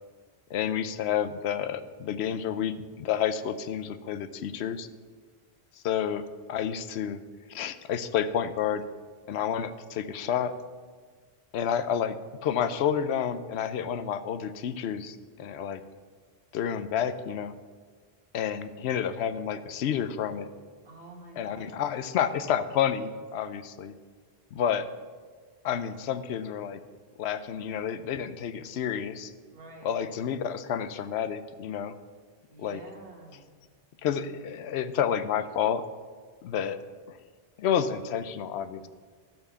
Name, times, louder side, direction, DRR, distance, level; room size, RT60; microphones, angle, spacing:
voice 1, 0.5-4.9 5.8-6.2 6.5-7.2 7.5-8.8 9.3-10.5 11.5-12.1 12.4-15.8 16.5-17.5 18.3-20.5 21.4-23.9 24.5-24.9 25.6-26.8 27.2-29.3 29.8-31.9 32.6-32.8 34.0-35.8 36.4-36.8 37.1-37.2 37.6-38.9, left 8 dB, 80° left, 12 dB, 0.8 m, -30 dB
voice 2, 20.8-22.0 29.5-29.9 32.5-33.5 38.7-38.9, right 2 dB, 60° right, -1 dB, 1.9 m, -48 dB
12.0 x 4.6 x 6.8 m, 1.5 s
omnidirectional pair, 1.1 m